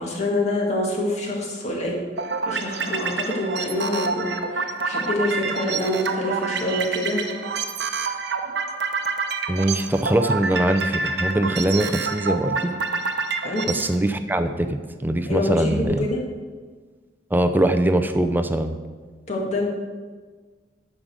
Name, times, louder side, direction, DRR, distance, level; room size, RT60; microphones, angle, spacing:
voice 1, 0.0-2.0 2.5-7.2 13.4-13.6 15.3-16.2 19.3-19.7, left 1 dB, 40° left, -2 dB, 2.0 m, -26 dB
sound 1, 2.2-14.0, right 4 dB, 65° right, 0.8 m, -27 dB
voice 2, 9.5-12.7 13.7-16.1 17.3-18.8, right 1 dB, 10° right, 8 dB, 0.5 m, -22 dB
11.0 x 5.1 x 6.3 m, 1.5 s
head